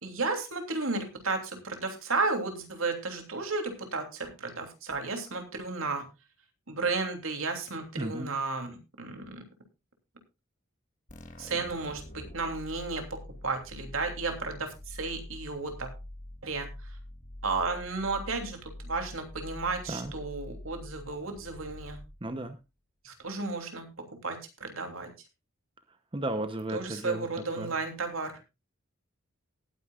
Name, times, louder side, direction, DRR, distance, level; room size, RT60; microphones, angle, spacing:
voice 1, 0.0-6.1 6.7-9.4 11.4-15.9 16.4-17.0 17.4-22.0 23.0-25.1 26.7-28.3, right 3 dB, 80° right, 5 dB, 3.0 m, -33 dB
voice 2, 8.0-8.3 19.9-20.1 22.2-22.5 26.1-27.3 27.6-27.7, right 1 dB, 25° right, 9 dB, 0.8 m, -34 dB
sound 1, 11.1-22.6, left 1 dB, 35° left, 1.5 m, -45 dB
19.0 x 9.4 x 2.4 m, 0.26 s
head